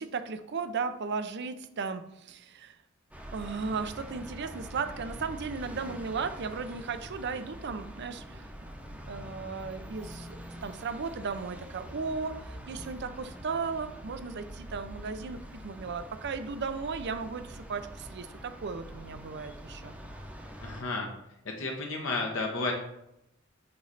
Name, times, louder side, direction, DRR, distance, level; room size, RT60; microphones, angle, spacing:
voice 1, 0.0-2.8 3.3-8.5 8.9-20.0, right 5 dB, 55° right, 10 dB, 0.5 m, -36 dB
sound 1, 3.1-20.8, equal, 5° right, 0.8 m, -45 dB
voice 2, 20.6-21.1 21.6-22.7, left 3 dB, 70° left, 1 dB, 1.0 m, -32 dB
8.8 x 3.1 x 4.0 m, 0.83 s
head